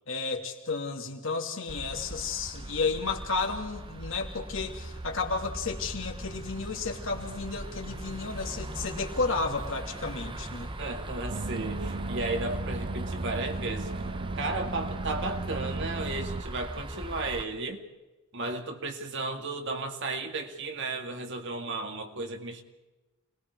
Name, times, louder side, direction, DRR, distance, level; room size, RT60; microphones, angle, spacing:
voice 1, 0.1-10.7, left 4 dB, 60° left, 2 dB, 2.9 m, -32 dB
sound 1, 1.7-17.4, right 1 dB, 25° right, 0.9 m, -39 dB
voice 2, 10.8-13.9 14.4-17.8 18.3-22.6, right 3 dB, 55° right, 4 dB, 2.3 m, -34 dB
sound 2, 11.3-16.4, right 2 dB, 40° right, 0.6 m, -35 dB
28.5 x 21.0 x 4.8 m, 1.1 s
head